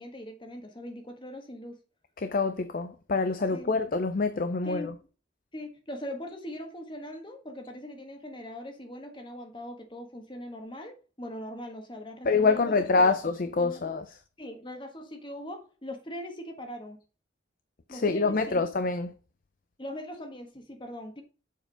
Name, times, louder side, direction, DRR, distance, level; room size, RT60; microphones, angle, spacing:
voice 1, 0.0-1.8 3.5-3.8 4.6-4.9 5.5-13.2 13.6-14.0 14.4-17.0 17.9-18.6 19.8-21.2, left 1 dB, 25° left, 1.4 m, -41 dB
voice 2, 2.2-4.9 12.2-14.1 17.9-19.1, left 4 dB, 50° left, 0.5 m, -26 dB
7.3 x 4.4 x 5.0 m
head